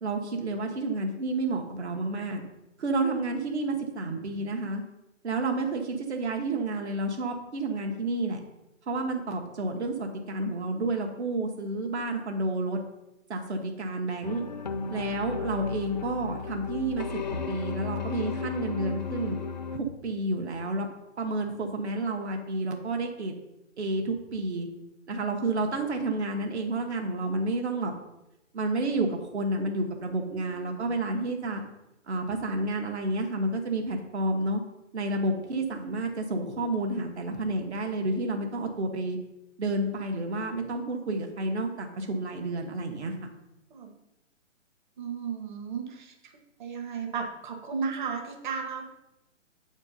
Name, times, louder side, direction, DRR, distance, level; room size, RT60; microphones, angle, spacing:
voice 1, 0.0-2.4 2.8-4.8 5.2-8.4 8.9-12.8 13.3-14.4 14.9-17.1 17.5-19.4 19.7-20.9 21.2-23.3 23.8-24.7 25.1-27.9 28.5-31.6 32.1-34.6 34.9-39.2 39.6-43.1, right 2 dB, 60° right, 3 dB, 1.3 m, -30 dB
sound 1, 14.2-19.8, left 5 dB, 35° left, 0.4 m, -34 dB
voice 2, 45.0-46.1 46.6-48.8, right 6 dB, 40° right, 3 dB, 1.3 m, -34 dB
7.6 x 4.4 x 5.4 m, 0.90 s
hypercardioid pair, 155°, 38 cm